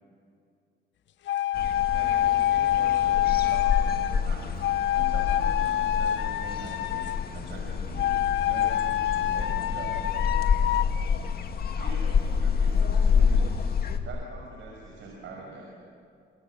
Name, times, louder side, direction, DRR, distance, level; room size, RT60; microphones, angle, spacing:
sound 1, 1.3-4.2 4.6-7.3 8.0-10.8, left 12 dB, 65° left, 0.7 m, -26 dB
sound 2, 1.5-14.0, left 6 dB, 50° left, 2.2 m, -28 dB
voice 1, 1.9-4.5 4.9-8.1 8.4-10.1 10.6-10.8 11.1-11.2 11.8-13.7 14.0-15.6, right 2 dB, 70° right, -1 dB, 5.6 m, -43 dB
27.0 x 26.5 x 7.3 m, 2.5 s
cardioid pair, 90°, 20 cm